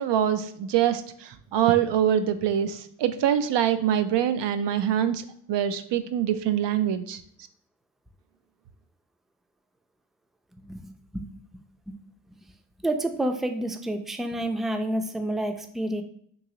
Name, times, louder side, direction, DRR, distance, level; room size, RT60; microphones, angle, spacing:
voice 1, 0.0-7.2, right 10 dB, 70° right, 10 dB, 0.5 m, -24 dB
voice 2, 12.8-16.0, right 1 dB, ahead, 6 dB, 0.5 m, -29 dB
3.1 x 2.6 x 3.8 m, 0.66 s
supercardioid pair, 45°, 44 cm